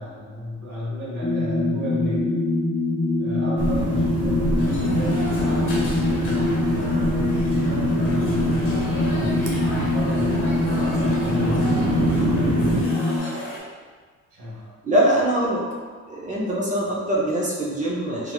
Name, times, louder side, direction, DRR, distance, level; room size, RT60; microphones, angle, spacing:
voice 1, 0.0-2.5 3.2-12.9 14.3-14.7, equal, 85° right, -8 dB, 1.5 m, -33 dB
sound 1, 1.2-13.2, left 2 dB, 20° left, 0.3 m, -24 dB
sound 2, 3.6-12.8, right 3 dB, 55° right, 0.6 m, -27 dB
sound 3, 4.6-13.6, left 1 dB, 45° left, 1.2 m, -35 dB
voice 2, 14.8-15.8 16.1-18.3, right 1 dB, 25° right, -4 dB, 0.8 m, -23 dB
3.1 x 2.8 x 2.4 m, 1.5 s
cardioid pair, 90°, 30 cm